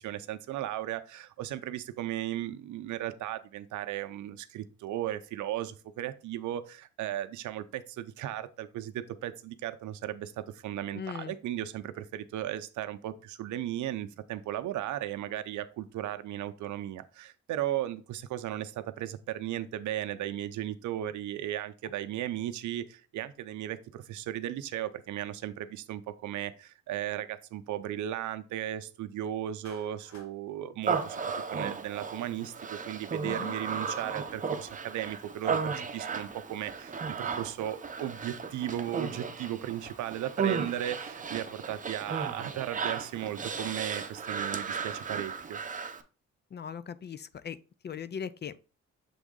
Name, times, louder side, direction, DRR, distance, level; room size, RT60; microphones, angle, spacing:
voice 1, 0.0-45.6, right 12 dB, 75° right, 0.6 m, -36 dB
voice 2, 10.9-11.4 33.2-33.5 46.5-47.6 47.8-48.6, left 7 dB, 35° left, 0.4 m, -39 dB
Clapping, 29.6-30.3, left 3 dB, 70° left, 2.1 m, -53 dB
Human voice, 30.8-46.0, right 5 dB, 25° right, 0.7 m, -35 dB
7.0 x 3.6 x 3.8 m
cardioid pair, 90°, 30 cm